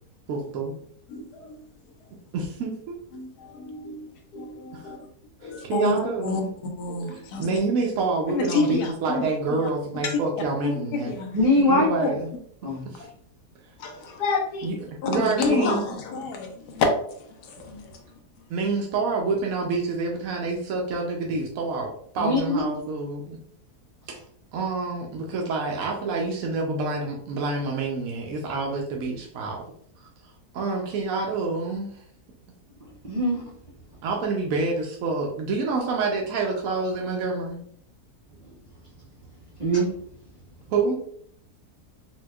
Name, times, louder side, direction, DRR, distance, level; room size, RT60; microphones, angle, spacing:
voice 1, 0.3-0.7 2.3-3.0 4.7-4.9 5.4-6.5 7.4-11.1 11.7-12.3 12.9-13.1 14.6-14.8 15.1-15.9 18.5-21.9 22.1-23.4 24.1-24.2 24.5-29.6 30.0-30.1 30.5-32.0 34.0-37.6 40.7-41.0, right 3 dB, 70° right, 0 dB, 0.9 m, -27 dB
voice 2, 1.1-1.6 3.1-4.0 4.3-5.0 5.4-5.9 6.2-6.4 6.8-7.6 8.3-9.2 9.6-9.7 10.0-10.2 10.6-11.3 12.0-12.1 13.0-13.1 13.8-14.7 15.0-16.9 17.4-18.2, left 4 dB, 85° left, 3 dB, 1.2 m, -28 dB
voice 3, 11.3-11.9 12.6-12.8 22.2-22.6 33.0-33.4 39.6-39.9, left 1 dB, 50° right, -7 dB, 0.4 m, -21 dB
4.3 x 2.2 x 2.3 m, 0.64 s
omnidirectional pair, 1.7 m